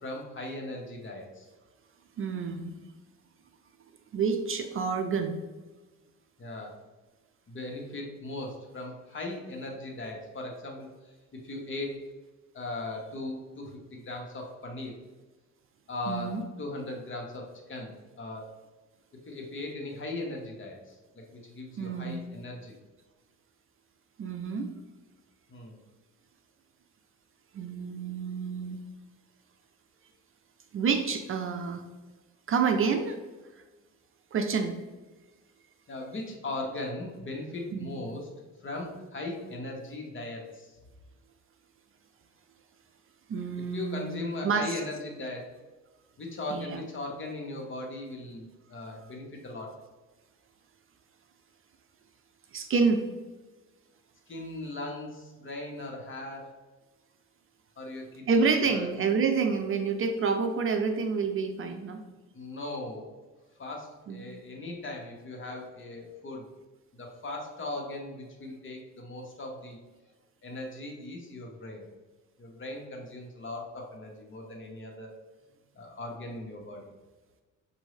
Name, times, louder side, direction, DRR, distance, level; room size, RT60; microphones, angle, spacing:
voice 1, 0.0-1.5 6.4-6.7 7.5-11.1 11.4-12.0 12.5-14.9 15.9-18.5 19.3-22.8 25.5-25.8 35.9-38.3 38.6-40.7 43.7-45.5 46.2-49.7 54.3-56.5 57.8-58.9 62.3-63.1 63.6-66.4 66.9-69.8 70.4-71.9 72.4-75.1 75.7-76.9, left 2 dB, 40° left, 0 dB, 1.2 m, -38 dB
voice 2, 2.2-2.7 4.1-5.4 16.1-16.4 21.8-22.2 24.2-24.7 27.5-28.8 30.7-31.8 32.5-33.2 34.3-34.8 37.7-37.9 43.3-44.7 46.5-46.8 52.5-53.1 58.3-62.0 64.1-64.2, right 5 dB, 45° right, 6 dB, 0.5 m, -28 dB
6.0 x 2.7 x 3.2 m, 1.2 s
cardioid pair, 90°, 30 cm